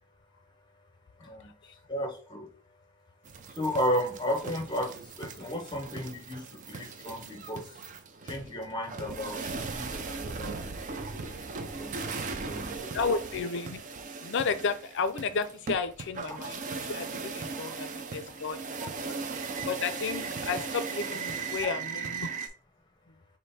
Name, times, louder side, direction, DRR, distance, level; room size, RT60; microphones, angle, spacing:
voice 1, 1.2-2.5 3.5-7.8 8.2-12.9, equal, 20° left, 4 dB, 0.8 m, -34 dB
sound 1, 3.3-22.5, right 4 dB, 35° right, 0.4 m, -38 dB
voice 2, 12.8-13.8 14.2-16.6 16.9-18.6 19.7-22.3, left 5 dB, 55° left, 12 dB, 0.4 m, -32 dB
5.2 x 2.1 x 4.1 m, 0.41 s
head